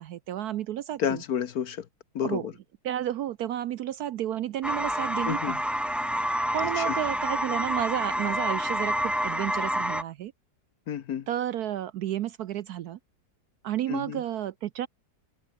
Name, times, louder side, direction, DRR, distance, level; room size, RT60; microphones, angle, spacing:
voice 1, 0.0-1.2 2.2-2.5 2.8-5.6 6.5-10.3 11.3-13.0 13.6-14.9, right 11 dB, 70° right, 1.0 m, -31 dB
voice 2, 1.0-1.9 2.1-2.5 5.3-5.6 6.8-6.9 10.9-11.3 13.9-14.2, left 9 dB, 60° left, 1.3 m, -30 dB
sound 1, 4.6-10.0, equal, ahead, 0.5 m, -28 dB
omnidirectional pair, 2.0 m